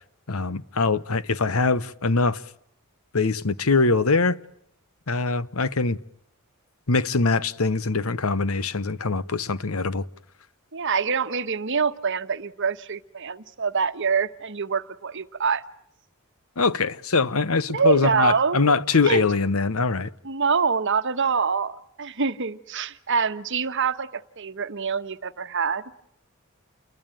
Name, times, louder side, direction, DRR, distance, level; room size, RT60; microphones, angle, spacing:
voice 1, 0.3-2.4 3.1-4.4 5.1-6.0 6.9-10.1 16.6-20.1, left 3 dB, 85° left, 1.1 m, -23 dB
voice 2, 10.7-15.6 17.7-18.8 19.0-19.3 20.2-25.8, right 5 dB, 60° right, 1.3 m, -25 dB
29.0 x 21.5 x 9.1 m
head